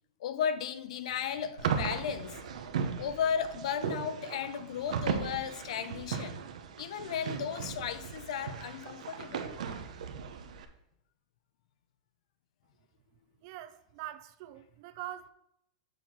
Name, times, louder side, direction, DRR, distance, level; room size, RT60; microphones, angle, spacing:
voice 1, 0.2-2.5 3.0-6.4 6.8-9.5, left 8 dB, 65° left, 0.7 m, -35 dB
sound 1, 1.6-10.6, right 7 dB, 85° right, 0.9 m, -37 dB
voice 2, 13.4-15.3, right 13 dB, 40° right, 0.5 m, -43 dB
6.7 x 5.9 x 4.8 m
supercardioid pair, 170°, 4 cm